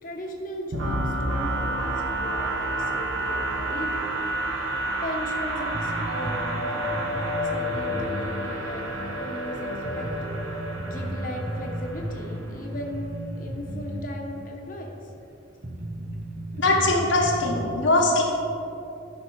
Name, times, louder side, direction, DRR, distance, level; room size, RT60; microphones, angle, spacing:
voice 1, 0.0-4.0 5.0-10.1 10.8-13.1 13.4-15.0, equal, 40° left, 0 dB, 1.2 m, -37 dB
sound 1, 0.7-12.5, right 1 dB, 90° right, 1.5 m, -29 dB
sound 2, 5.7-8.3 8.6-8.7 9.3-9.4 9.8-14.1 14.4-14.5 15.1-15.2 15.6-17.7, right 1 dB, 40° right, 0.8 m, -34 dB
voice 2, 16.6-18.2, left 2 dB, 75° left, -2 dB, 1.2 m, -21 dB
11.5 x 5.8 x 4.7 m, 2.7 s
head